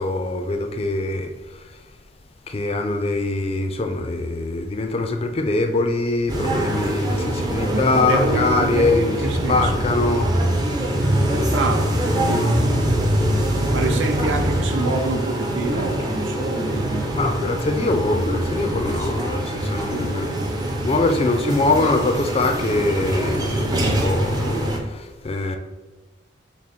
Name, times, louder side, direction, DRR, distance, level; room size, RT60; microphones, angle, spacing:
voice 1, 0.0-1.6 2.5-9.2 9.5-10.3 11.0-11.6 17.1-20.3 20.8-25.6, left 2 dB, 30° left, 5 dB, 0.4 m, -23 dB
sound 1, 6.3-24.8, right 1 dB, 20° right, 0.5 m, -23 dB
voice 2, 7.7-9.8 11.5-12.6 13.7-17.1 19.9-20.1, right 2 dB, 75° right, 4 dB, 0.7 m, -26 dB
6.1 x 2.0 x 4.2 m, 1.2 s
head